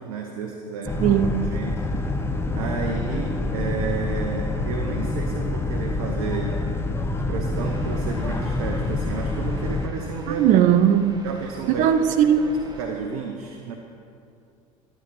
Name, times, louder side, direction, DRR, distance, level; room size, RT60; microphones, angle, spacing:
voice 1, 0.0-6.5 7.3-10.6 11.2-12.5 12.8-13.8, right 5 dB, 60° right, 2 dB, 1.0 m, -32 dB
Boat Water vehicle, 0.9-9.9, left 2 dB, 15° left, 1.0 m, -26 dB
voice 2, 1.0-1.5 10.3-11.2 11.8-12.5, right 9 dB, 45° right, 9 dB, 0.5 m, -18 dB
sound 1, 7.5-12.8, right 2 dB, 25° right, 1.4 m, -42 dB
12.5 x 9.1 x 4.2 m, 2.5 s
figure-of-eight pair, 70°, 19 cm